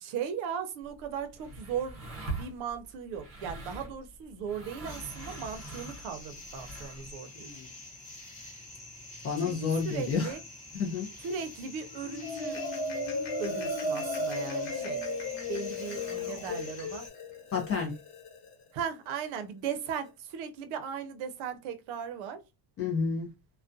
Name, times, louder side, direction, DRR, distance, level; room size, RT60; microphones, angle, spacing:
voice 1, 0.0-2.0 2.3-7.5 9.4-10.4 11.2-12.6 13.4-15.0 15.5-17.1 18.7-22.4, right 7 dB, 70° right, 0.6 m, -37 dB
sound 1, 0.8-7.1, right 2 dB, 30° right, 0.6 m, -43 dB
sound 2, 4.9-17.1, left 2 dB, 15° left, 0.8 m, -47 dB
voice 2, 7.4-7.7 9.2-10.3 10.7-11.1 17.5-17.9 22.8-23.3, left 5 dB, 30° left, 0.4 m, -30 dB
Marimba xylophone, 11.9-18.5, left 2 dB, 55° left, 1.1 m, -35 dB
2.3 x 2.1 x 2.5 m
cardioid pair, 180°, 49 cm